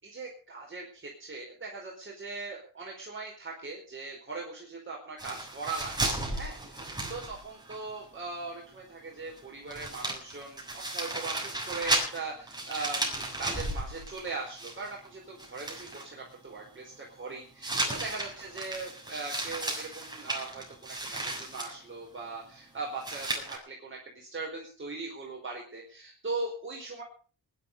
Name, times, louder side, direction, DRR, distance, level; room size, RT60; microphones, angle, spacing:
voice 1, 0.0-27.0, right 3 dB, 30° right, -2 dB, 4.8 m, -40 dB
sound 1, 5.2-7.8 8.0-8.1 9.4-9.5 9.7-15.1 15.4-16.1 17.6-21.7 23.0-23.6, right 2 dB, 10° right, 7.0 m, -34 dB
19.0 x 11.5 x 5.6 m, 0.42 s
cardioid pair, 105°, 39 cm